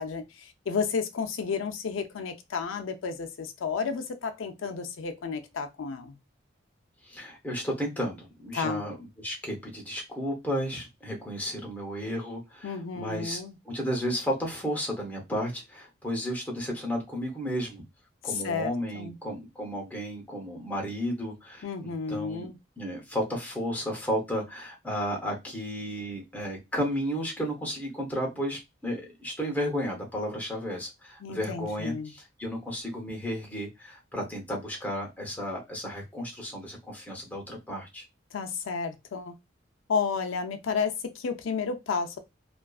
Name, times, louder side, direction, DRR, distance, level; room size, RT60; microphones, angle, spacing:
voice 1, 0.0-6.2 8.5-8.8 12.6-13.6 18.2-19.2 21.6-22.6 31.2-32.1 38.3-39.3 39.9-42.2, left 5 dB, 85° left, 0.4 m, -32 dB
voice 2, 7.0-13.4 13.6-17.8 18.2-22.5 22.8-38.0, equal, 10° left, 0.7 m, -33 dB
2.4 x 2.3 x 2.3 m
head